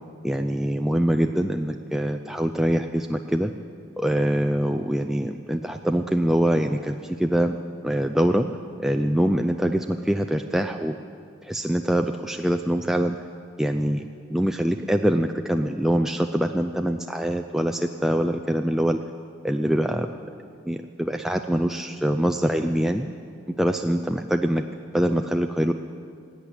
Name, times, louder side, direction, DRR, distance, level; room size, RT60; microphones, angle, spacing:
voice 1, 0.2-3.5 4.0-7.6 7.8-8.5 8.8-11.0 11.4-13.2 13.6-19.0 19.4-20.1 20.7-23.1 23.6-24.6 24.9-25.7, equal, ahead, 5 dB, 0.3 m, -24 dB
16.0 x 8.8 x 9.9 m, 2.2 s
head